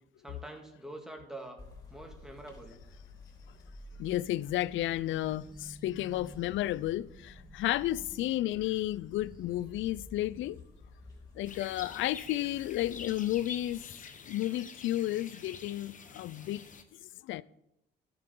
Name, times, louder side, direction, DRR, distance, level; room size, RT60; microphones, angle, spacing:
voice 1, 0.2-1.6 1.9-2.8 6.0-6.4, right 1 dB, 5° right, 1.8 m, -46 dB
sound 1, 1.6-13.8, left 2 dB, 20° left, 3.8 m, -53 dB
voice 2, 4.0-10.6 11.4-13.8 14.3-16.6 17.3-17.4, left 14 dB, 75° left, 0.4 m, -32 dB
sound 2, 4.0-10.6, right 1 dB, 20° right, 2.0 m, -53 dB
sound 3, 11.4-16.8, left 5 dB, 40° left, 1.1 m, -47 dB
13.0 x 6.9 x 3.8 m
cardioid pair, 90°, 20 cm